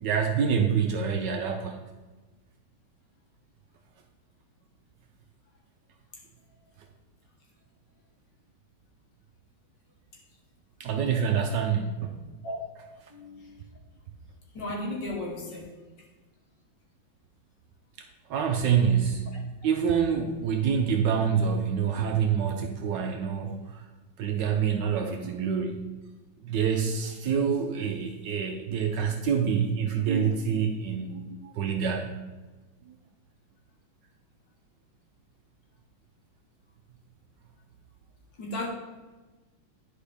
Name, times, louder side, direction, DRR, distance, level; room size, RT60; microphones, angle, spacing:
voice 1, 0.0-1.8 10.8-12.2 18.3-19.3 19.6-23.8 24.2-25.9 26.4-32.2, right 7 dB, 70° right, 4 dB, 1.1 m, -26 dB
voice 2, 13.1-13.5 14.5-15.7 38.4-38.7, left 1 dB, 60° left, -3 dB, 2.1 m, -34 dB
10.5 x 5.0 x 3.4 m, 1.2 s
omnidirectional pair, 2.2 m